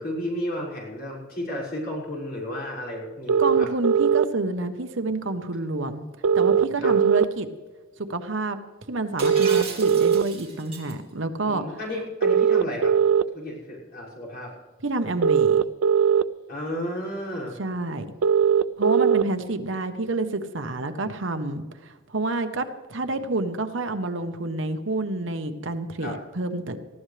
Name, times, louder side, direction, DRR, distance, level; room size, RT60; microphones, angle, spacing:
voice 1, 0.0-3.7 6.8-6.9 11.4-12.9 13.3-14.5 16.5-17.5 26.0-26.2, equal, 50° left, -5 dB, 5.9 m, -33 dB
sound 1, 3.3-4.3 6.2-7.3 9.2-10.2 12.2-13.2 15.2-16.2 18.2-19.2, right 7 dB, 90° right, 0.5 m, -19 dB
voice 2, 3.4-6.0 6.3-7.5 8.1-8.6 8.9-11.8 14.8-15.6 17.6-18.1 18.8-26.8, right 2 dB, 65° right, 8 dB, 1.0 m, -28 dB
Shatter, 9.2-10.9, right 4 dB, 30° right, 2.8 m, -36 dB
19.5 x 14.5 x 3.3 m, 1.3 s
head